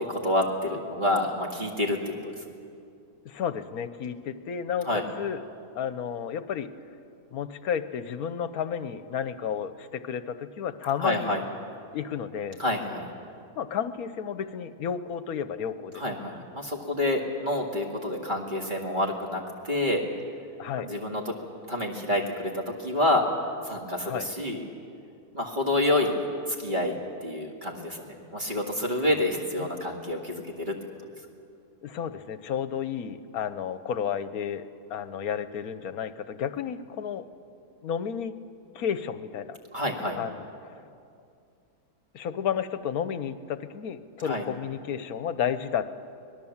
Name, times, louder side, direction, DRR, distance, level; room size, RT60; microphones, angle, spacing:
voice 1, 0.1-2.3 4.9-5.0 11.0-11.4 12.6-13.1 16.0-20.0 20.8-21.4 21.7-23.3 23.6-24.6 25.3-26.2 26.6-26.9 27.2-30.7 39.7-40.2 44.2-44.4, left 1 dB, 30° right, 0 dB, 2.1 m, -28 dB
voice 2, 3.2-5.4 5.7-6.7 7.3-11.4 11.9-12.6 13.6-16.0 20.6-20.9 24.0-24.3 29.0-29.2 29.6-29.7 31.8-37.3 37.8-38.3 38.7-39.6 40.2-40.5 42.1-46.0, left 8 dB, 65° left, 12 dB, 1.3 m, -32 dB
25.0 x 19.0 x 7.3 m, 2.5 s
omnidirectional pair, 1.7 m